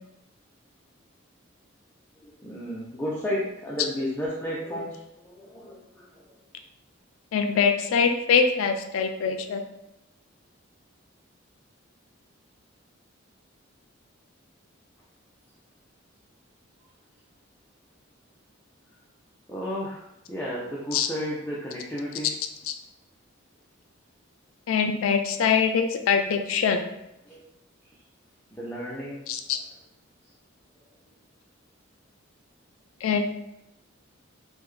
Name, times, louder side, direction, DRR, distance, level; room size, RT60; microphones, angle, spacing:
voice 1, 2.2-6.2 19.5-22.3 27.3-27.4 28.5-29.4, equal, 10° left, -6 dB, 0.4 m, -33 dB
voice 2, 7.3-9.6 20.9-21.1 24.7-26.9 29.3-29.6 33.0-33.3, left 6 dB, 80° left, 5 dB, 0.3 m, -23 dB
3.6 x 2.1 x 3.1 m, 0.85 s
head